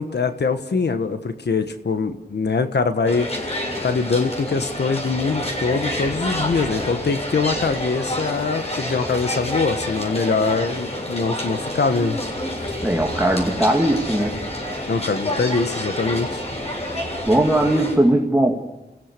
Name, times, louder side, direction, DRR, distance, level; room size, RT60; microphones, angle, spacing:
voice 1, 0.0-3.3 3.8-12.2 14.9-16.4, left 4 dB, 80° left, 9 dB, 1.4 m, -23 dB
sound 1, 3.1-18.0, left 1 dB, 40° left, 7.5 m, -28 dB
voice 2, 12.8-14.4 17.3-18.6, right 1 dB, 10° right, 0 dB, 2.3 m, -19 dB
29.5 x 16.5 x 6.8 m, 1.1 s
wide cardioid pair, 60°, 17 cm